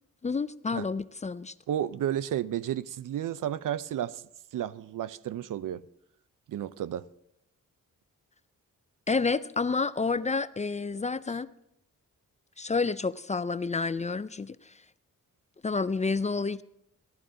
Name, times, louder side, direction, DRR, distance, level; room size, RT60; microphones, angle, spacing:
voice 1, 0.2-1.5 9.1-11.5 12.6-14.7 15.6-16.6, left 4 dB, 25° left, 0.3 m, -29 dB
voice 2, 1.7-4.2 4.5-5.8 6.5-7.1, right 11 dB, 75° right, 0.5 m, -32 dB
14.0 x 12.5 x 3.8 m
cardioid pair, 80°, 32 cm